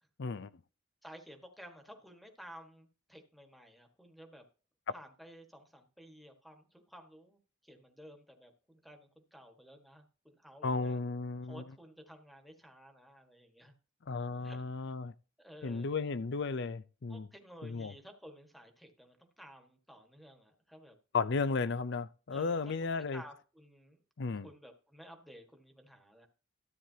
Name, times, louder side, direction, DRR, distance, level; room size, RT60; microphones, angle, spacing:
voice 1, 0.2-0.5 10.6-11.6 14.1-15.1 15.6-17.3 17.6-17.9 21.1-23.2 24.2-24.5, left 4 dB, 60° left, 0.5 m, -34 dB
voice 2, 1.0-4.5 4.9-11.0 11.4-13.7 14.4-14.6 15.4-16.1 17.1-21.0 22.3-22.6 23.1-24.0 24.3-26.3, equal, ahead, 1.5 m, -54 dB
13.5 x 9.1 x 2.8 m
head